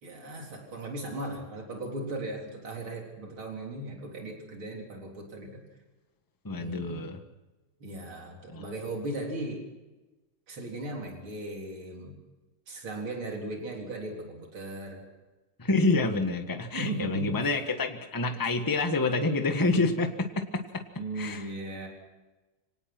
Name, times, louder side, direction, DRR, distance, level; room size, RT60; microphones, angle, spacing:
voice 1, 0.0-5.6 6.6-7.1 7.8-9.7 10.5-12.2 12.7-15.0 16.8-17.5 19.9-20.0 21.0-21.9, right 2 dB, 75° right, 1 dB, 4.7 m, -37 dB
voice 2, 6.4-7.2 8.5-8.6 15.6-20.1 20.5-20.8 21.2-21.5, left 3 dB, 10° left, 6 dB, 1.3 m, -27 dB
25.5 x 18.5 x 6.1 m, 1.1 s
omnidirectional pair, 2.3 m